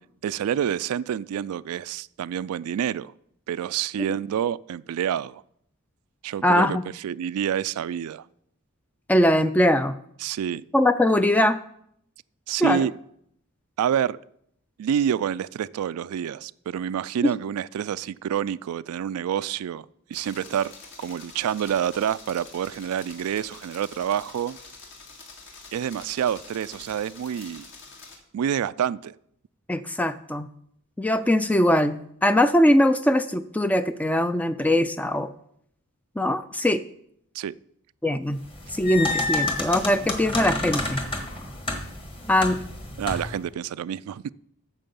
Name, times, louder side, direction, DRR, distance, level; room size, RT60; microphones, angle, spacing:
voice 1, 0.2-3.1 3.5-5.4 6.2-8.2 10.2-10.6 12.5-12.9 13.8-14.2 14.8-19.9 20.1-20.7 21.0-24.6 25.7-27.7 28.3-29.1 37.3-37.5 43.0-44.3, right 9 dB, 85° right, 17 dB, 0.3 m, -28 dB
voice 2, 6.4-6.8 9.1-9.9 10.7-11.6 12.6-12.9 17.2-17.3 29.7-30.5 31.0-35.3 36.2-36.8 38.0-38.4 38.7-41.0 42.3-42.6, left 1 dB, 5° left, 12 dB, 0.3 m, -21 dB
sound 1, 20.1-28.2, left 3 dB, 55° left, 2.0 m, -46 dB
sound 2, 38.4-43.4, left 2 dB, 25° left, 1.5 m, -30 dB
9.0 x 6.6 x 7.0 m, 0.71 s
head